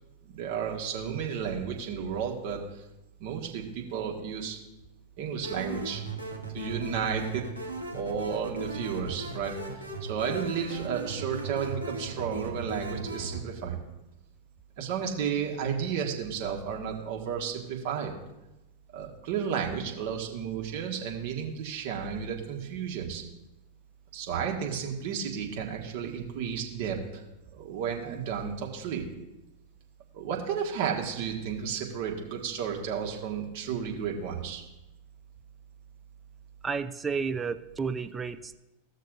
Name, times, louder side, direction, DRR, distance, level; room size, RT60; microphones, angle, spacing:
voice 1, 0.3-2.8 3.2-4.6 5.2-6.0 6.5-7.4 7.9-13.8 14.8-18.1 18.9-23.2 24.1-27.2 27.5-29.1 30.1-34.6, right 7 dB, 50° right, 0 dB, 1.6 m, -32 dB
sound 1, 5.4-13.4, right 2 dB, 90° right, 1.2 m, -38 dB
voice 2, 36.6-38.5, right 5 dB, 15° right, 9 dB, 0.5 m, -31 dB
15.5 x 6.5 x 2.6 m, 0.98 s
figure-of-eight pair, 90°, 0 cm